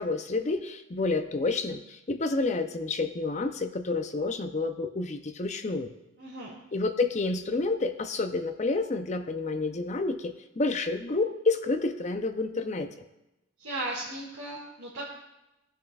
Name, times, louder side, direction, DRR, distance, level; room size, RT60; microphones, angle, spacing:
voice 1, 0.0-5.9 6.7-12.9, left 3 dB, 35° left, 8 dB, 0.5 m, -29 dB
voice 2, 6.2-6.5 13.6-15.1, right 2 dB, 80° right, -6 dB, 2.1 m, -36 dB
17.5 x 6.4 x 2.4 m, 0.94 s
head